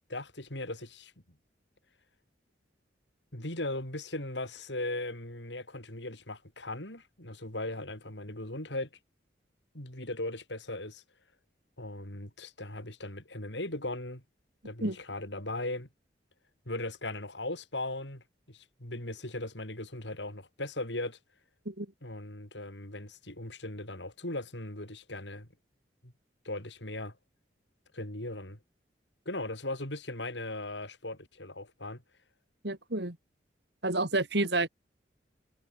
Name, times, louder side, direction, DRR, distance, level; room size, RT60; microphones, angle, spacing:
voice 1, 0.1-1.1 3.3-8.9 9.7-11.0 11.8-14.2 14.6-15.9 16.7-21.2 22.0-25.5 26.0-26.1 26.4-27.1 27.9-28.6 29.3-32.0, left 2 dB, 80° left, 7.5 m, -38 dB
voice 2, 32.6-33.2 33.8-34.7, right 2 dB, 65° right, 3.3 m, -29 dB
head